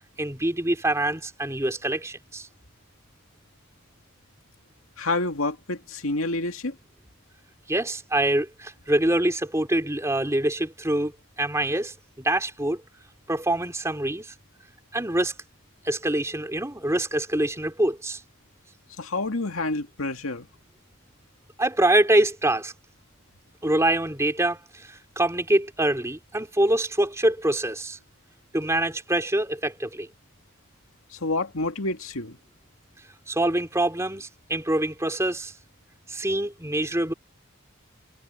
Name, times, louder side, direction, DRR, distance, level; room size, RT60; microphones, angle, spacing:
voice 1, 0.2-2.5 7.7-11.1 11.4-12.8 13.3-14.3 14.9-15.3 15.8-18.2 21.6-22.7 23.6-28.0 28.5-30.1 33.3-35.5 36.1-37.1, right 1 dB, 15° right, 3.4 m, -25 dB
voice 2, 5.0-6.7 19.0-20.5 31.1-32.4, left 2 dB, 75° left, 2.3 m, -28 dB
head